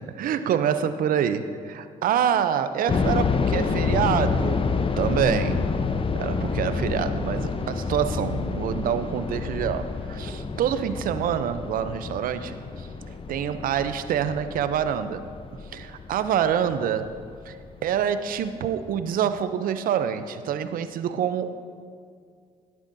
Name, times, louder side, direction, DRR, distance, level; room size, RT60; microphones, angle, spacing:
voice 1, 0.0-4.6 5.0-5.7 6.1-12.9 13.3-15.3 15.7-17.1 17.5-17.6 17.8-21.5, right 9 dB, 70° right, 11 dB, 0.5 m, -26 dB
sound 1, 2.9-17.7 18.0-18.1 18.7-19.0, left 5 dB, 35° left, 0.7 m, -28 dB
12.5 x 10.5 x 2.6 m, 2.2 s
supercardioid pair, 60°, 15 cm